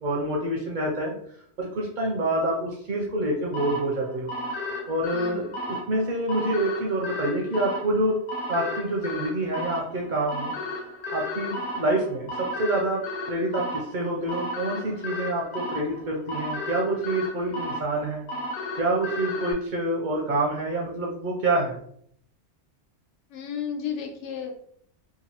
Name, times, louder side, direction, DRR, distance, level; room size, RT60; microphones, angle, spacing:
voice 1, 0.0-1.2 1.6-4.3 4.9-8.2 8.5-10.5 11.1-18.3 18.8-21.8, right 1 dB, 55° right, -2 dB, 0.6 m, -27 dB
sound 1, 3.5-19.5, left 1 dB, 55° left, 0.6 m, -34 dB
voice 2, 5.1-5.6 23.3-24.5, left 7 dB, 80° left, 3 dB, 0.9 m, -33 dB
2.9 x 2.3 x 2.8 m, 0.65 s
omnidirectional pair, 1.2 m